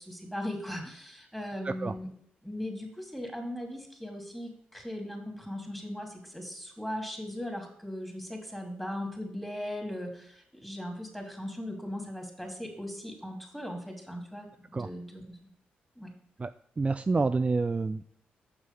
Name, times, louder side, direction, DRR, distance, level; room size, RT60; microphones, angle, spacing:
voice 1, 0.0-2.1 2.4-15.4 16.0-16.1, left 1 dB, 5° left, 2 dB, 2.8 m, -38 dB
voice 2, 16.8-18.0, right 3 dB, 30° right, 11 dB, 0.3 m, -28 dB
6.2 x 6.2 x 5.5 m, 0.66 s
hypercardioid pair, 45°, 4 cm